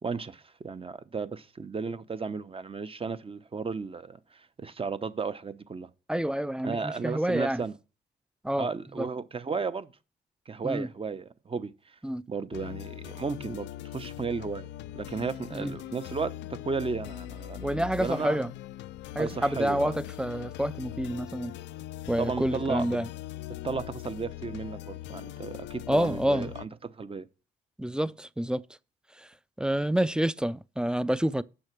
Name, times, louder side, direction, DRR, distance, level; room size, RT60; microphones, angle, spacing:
voice 1, 0.0-5.9 6.6-7.7 8.6-9.9 10.5-11.9 12.3-14.7 14.9-18.4 19.2-19.9 22.2-22.9 23.6-27.3, right 4 dB, 30° right, 0.8 m, -34 dB
voice 2, 6.1-7.6 8.4-8.7 9.0-9.1 10.6-10.9 12.0-12.2 15.5-15.8 17.6-18.5 19.1-21.5 22.1-23.1 25.9-26.5 27.8-28.6 29.2-29.3 29.6-31.4, right 1 dB, 5° right, 0.5 m, -28 dB
sound 1, 12.5-26.7, left 14 dB, 80° left, 0.4 m, -41 dB
8.3 x 6.3 x 5.9 m
supercardioid pair, 65°, 18 cm